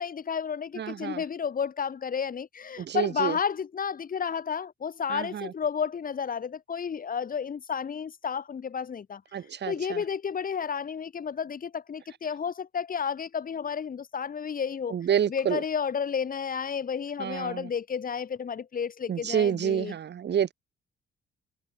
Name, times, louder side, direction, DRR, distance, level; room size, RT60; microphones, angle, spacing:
voice 1, 0.0-9.2 9.7-15.0 15.3-19.9, left 7 dB, 45° left, 2.8 m, -31 dB
voice 2, 0.7-1.2 2.8-3.4 5.1-5.5 9.3-10.0 14.9-15.6 17.2-17.7 19.1-20.5, right 9 dB, 60° right, 6.4 m, -28 dB
cardioid pair, 90°, 20 cm